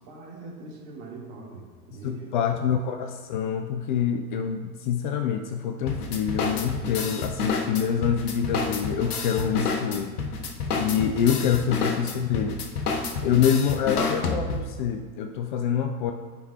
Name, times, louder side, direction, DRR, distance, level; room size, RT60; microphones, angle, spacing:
voice 1, 0.0-2.5 11.8-12.1, right 3 dB, 50° right, -2 dB, 2.0 m, -42 dB
voice 2, 2.0-10.2 10.7-12.6 13.2-16.1, left 8 dB, 35° left, 6 dB, 0.4 m, -26 dB
sound 1, 5.9-14.8, left 4 dB, 70° left, 0.9 m, -29 dB
12.5 x 5.1 x 2.3 m, 1.5 s
figure-of-eight pair, 80°, 46 cm